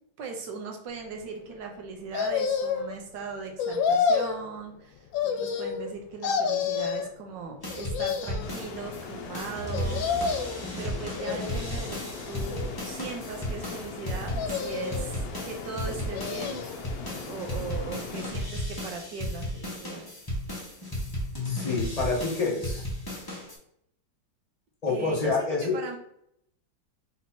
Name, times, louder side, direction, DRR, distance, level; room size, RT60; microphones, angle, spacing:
voice 1, 0.2-10.0 10.8-16.7 17.3-20.1 24.9-26.0, right 4 dB, 75° right, 3 dB, 1.5 m, -39 dB
sound 1, 2.1-2.9 3.6-4.4 5.1-5.9 6.2-7.1 7.7-8.5 9.7-10.6 11.2-11.9 12.5-13.3 14.3-15.1 15.9-16.8 17.2-17.3, left 6 dB, 80° left, 1.3 m, -29 dB
sound 2, 7.6-9.0 9.3-23.6, equal, 15° left, 0.9 m, -35 dB
sound 3, 8.4-18.3, left 5 dB, 65° left, 1.0 m, -41 dB
voice 2, 21.4-22.9 24.8-25.9, left 4 dB, 35° left, -3 dB, 0.6 m, -28 dB
4.4 x 2.8 x 4.3 m, 0.72 s
omnidirectional pair, 2.0 m